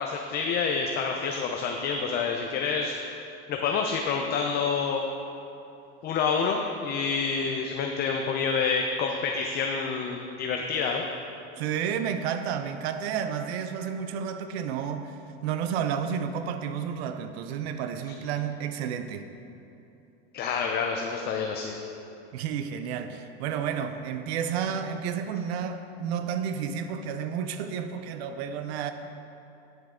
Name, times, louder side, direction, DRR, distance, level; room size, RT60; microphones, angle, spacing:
voice 1, 0.0-2.9 3.5-5.1 6.0-11.0 20.3-21.8, left 5 dB, 30° left, 2 dB, 0.6 m, -28 dB
voice 2, 11.6-15.2 15.4-19.3 22.3-28.9, right 7 dB, 80° right, 9 dB, 0.7 m, -31 dB
9.4 x 7.8 x 3.8 m, 2.9 s
supercardioid pair, 145°, 31 cm